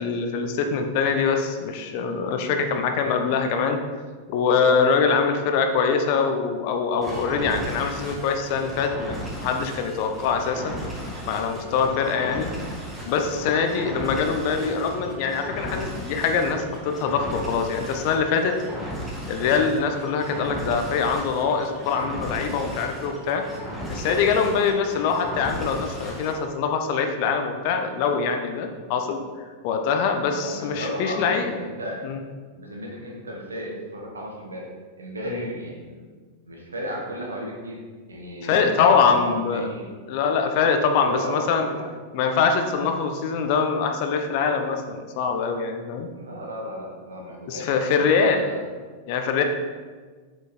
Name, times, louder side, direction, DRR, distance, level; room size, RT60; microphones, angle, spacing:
voice 1, 0.0-3.8 4.3-10.8 11.2-12.5 13.1-18.5 19.3-23.4 23.9-29.2 29.6-31.5 32.0-32.2 35.3-35.4 38.4-39.7 40.1-41.7 42.1-46.1 47.5-48.5 49.1-49.4, left 5 dB, 45° left, 5 dB, 0.9 m, -23 dB
sound 1, 7.0-26.4, equal, 5° right, 1.9 m, -35 dB
voice 2, 30.4-32.0 32.6-34.7 35.0-36.1 36.5-37.8 38.1-39.9 41.0-41.9 46.1-48.0 48.3-48.7, equal, 75° right, -1 dB, 1.8 m, -34 dB
8.0 x 5.1 x 4.3 m, 1.5 s
figure-of-eight pair, 90°, 0 cm